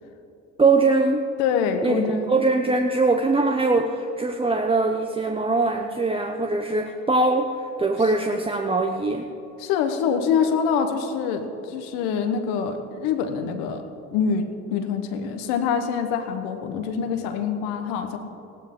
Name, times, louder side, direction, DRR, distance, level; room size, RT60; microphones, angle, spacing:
voice 1, 0.6-1.3 1.8-7.5 7.8-9.3, right 3 dB, 15° right, 4 dB, 0.8 m, -22 dB
voice 2, 1.4-2.3 9.6-13.8 14.1-18.2, left 6 dB, 80° left, 7 dB, 1.2 m, -25 dB
15.5 x 12.0 x 3.8 m, 2.8 s
hypercardioid pair, 60°, 35 cm